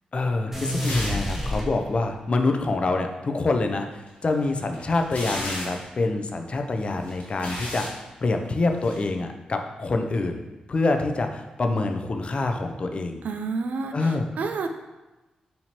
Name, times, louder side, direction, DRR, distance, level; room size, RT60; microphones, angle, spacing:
voice 1, 0.1-10.4 10.7-13.2 13.9-14.3, left 3 dB, 45° left, 5 dB, 0.4 m, -26 dB
sound 1, 0.5-2.3, equal, 10° right, 0.8 m, -29 dB
sound 2, 0.8-1.3 1.6-1.7 4.1-5.9 6.8-8.0 8.8-9.0, left 1 dB, 80° left, 0.9 m, -35 dB
voice 2, 13.2-14.7, right 4 dB, 75° right, 6 dB, 0.3 m, -30 dB
4.4 x 2.7 x 2.8 m, 1.1 s
cardioid pair, 65°, 3 cm